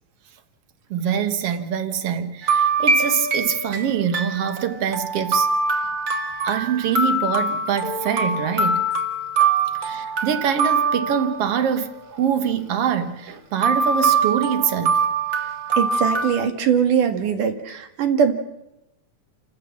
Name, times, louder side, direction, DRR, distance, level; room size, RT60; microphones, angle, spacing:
voice 1, 0.9-5.5 6.4-8.9 9.8-15.0, right 8 dB, 55° right, 2.0 m, -24 dB
sound 1, 2.4-11.8 13.6-16.3, right 4 dB, 35° right, 2.0 m, -23 dB
voice 2, 15.7-18.3, right 7 dB, 70° right, 3.4 m, -21 dB
29.5 x 15.0 x 7.4 m
omnidirectional pair, 3.8 m